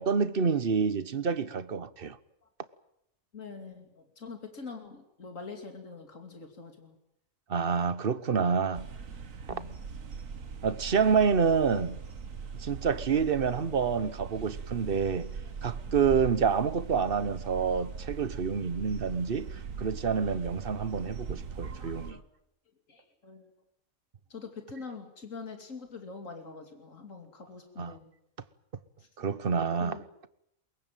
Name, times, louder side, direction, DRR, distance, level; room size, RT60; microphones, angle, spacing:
voice 1, 0.0-2.2 7.5-8.9 9.5-9.6 10.6-12.0 12.6-15.3 15.6-22.2 27.8-28.0 29.2-30.0, right 6 dB, 45° right, 1.2 m, -28 dB
voice 2, 3.3-6.9 9.5-9.8 15.9-16.0 21.8-22.2 22.9-23.5 24.3-28.1 29.0-29.1 29.8-30.0, left 4 dB, 80° left, 3.1 m, -44 dB
sound 1, 8.7-22.1, right 5 dB, 85° right, 1.8 m, -41 dB
23.0 x 22.0 x 9.1 m
omnidirectional pair, 1.3 m